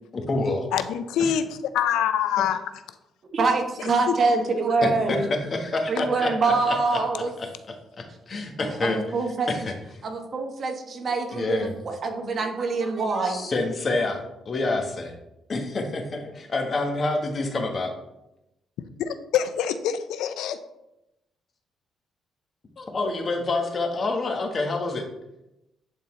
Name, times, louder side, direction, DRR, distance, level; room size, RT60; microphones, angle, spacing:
voice 1, 0.1-0.7 4.8-5.2 5.7-7.0 8.0-9.0 9.5-9.7 11.3-11.7 13.2-14.2 14.4-15.1 15.5-17.9 22.8-25.1, left 2 dB, 40° left, 3 dB, 1.3 m, -27 dB
voice 2, 0.7-2.6 2.9-3.0 4.1-4.2 19.0-20.6, left 9 dB, 85° left, 11 dB, 0.4 m, -25 dB
voice 3, 3.3-5.2 5.9-7.3 8.8-9.5 10.0-13.5, right 3 dB, 50° right, 3 dB, 1.3 m, -25 dB
11.0 x 4.0 x 3.2 m, 0.90 s
cardioid pair, 90°, 0 cm